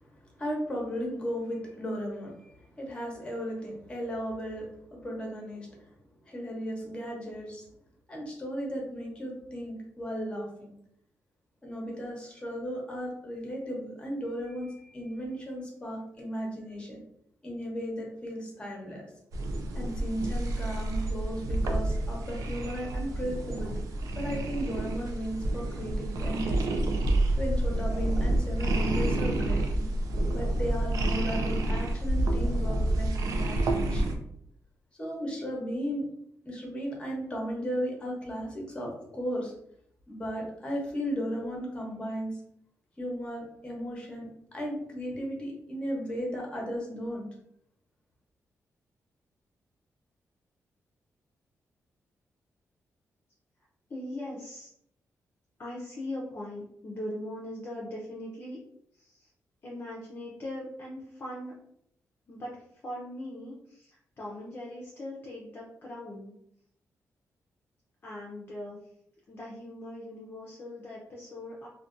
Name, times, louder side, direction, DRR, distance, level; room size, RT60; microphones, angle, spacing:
voice 1, 0.2-5.9 6.2-7.6 8.1-10.7 11.6-17.0 17.4-19.0 19.7-23.7 24.1-26.8 27.4-29.6 30.3-34.2 35.0-36.0 36.4-39.5 40.1-42.4 43.0-47.2, equal, 20° left, -1 dB, 0.8 m, -35 dB
sound 1, 19.3-34.1, right 1 dB, 85° right, 0.4 m, -29 dB
voice 2, 53.9-54.7 55.6-58.6 58.9-59.3 59.6-61.5 62.3-66.3 68.0-68.8 69.3-71.7, left 1 dB, 40° left, -4 dB, 0.5 m, -40 dB
2.6 x 2.1 x 2.5 m, 0.72 s
wide cardioid pair, 125°, 6 cm